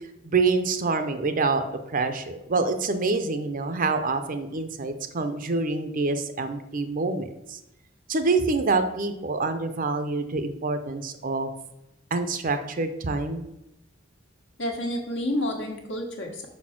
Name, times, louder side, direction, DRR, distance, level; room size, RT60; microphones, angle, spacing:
voice 1, 0.2-1.6 1.9-7.6 8.1-11.5 12.1-13.5, right 3 dB, 45° right, 9 dB, 0.6 m, -26 dB
voice 2, 14.6-16.5, left 1 dB, 65° left, 2 dB, 1.4 m, -29 dB
5.5 x 4.3 x 5.8 m, 0.88 s
head